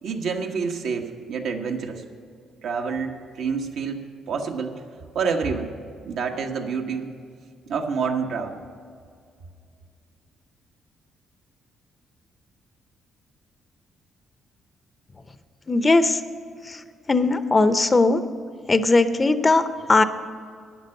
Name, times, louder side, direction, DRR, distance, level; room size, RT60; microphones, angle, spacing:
voice 1, 0.0-2.0 2.6-4.0 4.3-4.8 5.1-5.7 6.0-7.1 7.7-8.6, right 5 dB, 75° right, 2 dB, 1.3 m, -27 dB
voice 2, 15.7-16.2 16.6-16.8 17.1-18.2 18.7-20.0, left 3 dB, 25° left, 11 dB, 0.7 m, -19 dB
11.5 x 9.7 x 6.6 m, 2.2 s
cardioid pair, 90°, 0 cm